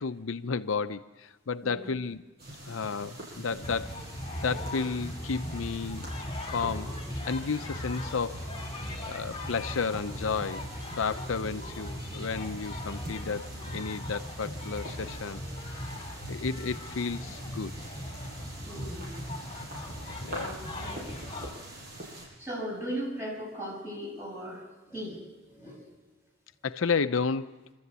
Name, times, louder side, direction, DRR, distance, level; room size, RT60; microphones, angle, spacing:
voice 1, 0.0-2.2 2.6-4.0 4.4-6.1 6.5-7.0 7.3-8.5 9.1-10.7 11.0-15.4 15.7-17.7 20.2-20.6 26.6-27.5, left 5 dB, 80° left, 11 dB, 0.6 m, -32 dB
voice 2, 1.6-2.0 2.6-2.8 18.7-19.2 20.3-21.2 22.4-25.8, right 1 dB, 10° right, -3 dB, 6.9 m, -38 dB
sound 1, 2.4-22.3, right 1 dB, 50° right, 7.2 m, -44 dB
sound 2, 3.6-21.5, left 1 dB, 25° left, 2.8 m, -39 dB
27.0 x 13.5 x 8.2 m, 1.2 s
head